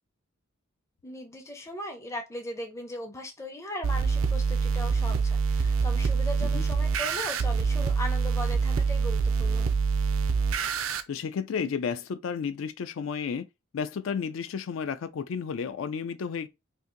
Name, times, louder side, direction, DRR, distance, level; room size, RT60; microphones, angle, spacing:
voice 1, 1.0-9.7, left 1 dB, 15° left, 0.5 m, -38 dB
sound 1, 3.8-11.0, right 5 dB, 75° right, 0.4 m, -25 dB
voice 2, 11.1-13.5 13.7-16.5, left 6 dB, 70° left, 0.4 m, -32 dB
2.7 x 2.6 x 3.7 m
head